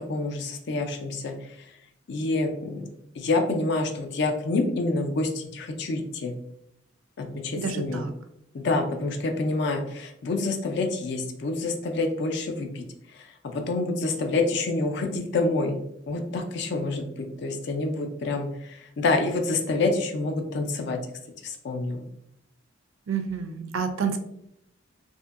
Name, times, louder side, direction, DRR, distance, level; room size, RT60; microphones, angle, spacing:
voice 1, 0.0-1.3 2.1-2.9 3.1-6.3 7.2-8.0 8.5-12.8 13.1-15.8 16.1-17.1 17.4-21.0 21.4-22.1, left 3 dB, 60° left, 5 dB, 0.4 m, -27 dB
voice 2, 7.6-8.1 23.1-24.2, right 6 dB, 80° right, 8 dB, 0.4 m, -29 dB
2.7 x 2.6 x 2.4 m, 0.75 s
head